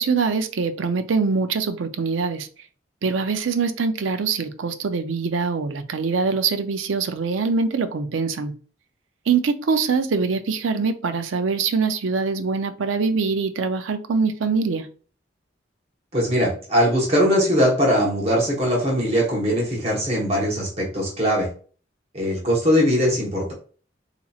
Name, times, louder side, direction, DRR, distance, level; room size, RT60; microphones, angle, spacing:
voice 1, 0.0-2.5 3.0-8.5 9.3-14.9, right 5 dB, 90° right, 8 dB, 0.5 m, -23 dB
voice 2, 16.1-21.5 22.1-23.5, equal, 30° right, -2 dB, 1.0 m, -21 dB
4.0 x 2.9 x 2.3 m, 0.40 s
head